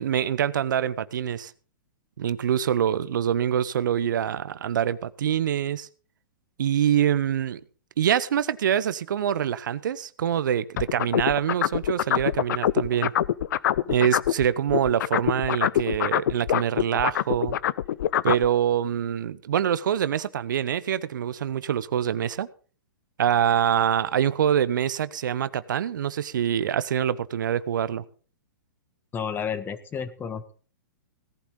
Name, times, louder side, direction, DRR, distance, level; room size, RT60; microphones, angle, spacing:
voice 1, 0.0-1.5 2.2-5.9 6.6-7.6 8.0-13.1 13.9-17.6 18.2-22.5 23.2-28.0, right 9 dB, 65° right, 17 dB, 0.8 m, -25 dB
sound 1, 10.8-14.4 14.7-18.5, left 11 dB, 60° left, 0.6 m, -24 dB
voice 2, 29.1-30.5, left 7 dB, 20° left, 13 dB, 1.3 m, -31 dB
17.5 x 11.5 x 3.9 m, 0.38 s
hypercardioid pair, 120°, 11 cm